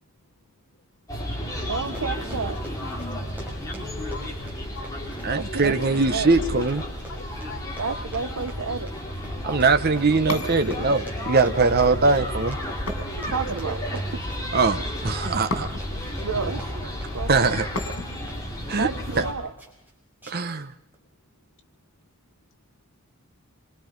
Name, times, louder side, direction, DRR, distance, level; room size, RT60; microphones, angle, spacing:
sound 1, 1.1-19.3, equal, 15° left, 4.2 m, -32 dB
voice 1, 1.7-2.6 5.3-5.8 6.1-6.3 7.8-8.9 13.1-14.1 16.2-17.5 18.7-19.5, right 5 dB, 75° right, 7 dB, 0.9 m, -31 dB
Run, 1.8-19.3 19.6-19.9 20.2-20.6 20.9-21.0, right 1 dB, 10° right, 5.8 m, -47 dB
voice 2, 3.5-5.1 6.6-6.7 7.1-8.0, left 3 dB, 60° left, 4 dB, 2.1 m, -42 dB
voice 3, 5.2-6.8 9.4-12.6 14.5-15.7 17.3-17.7 18.7-18.9 19.2-19.3 20.3-20.7, right 4 dB, 45° right, 8 dB, 0.9 m, -21 dB
sound 2, 10.3-11.2 12.9-13.8 15.5-16.1 17.8-18.4, left 2 dB, 90° left, 3.2 m, -34 dB
26.5 x 24.0 x 5.3 m, 0.79 s
head